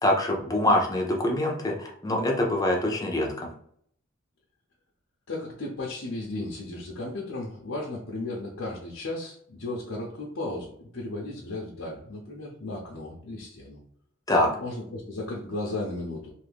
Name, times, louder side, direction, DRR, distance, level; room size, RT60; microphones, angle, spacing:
voice 1, 0.0-3.5 14.3-14.5, left 1 dB, 20° left, 0 dB, 0.6 m, -24 dB
voice 2, 5.3-13.8 14.6-16.3, left 2 dB, 85° left, -4 dB, 0.7 m, -35 dB
2.7 x 2.5 x 3.4 m, 0.63 s
head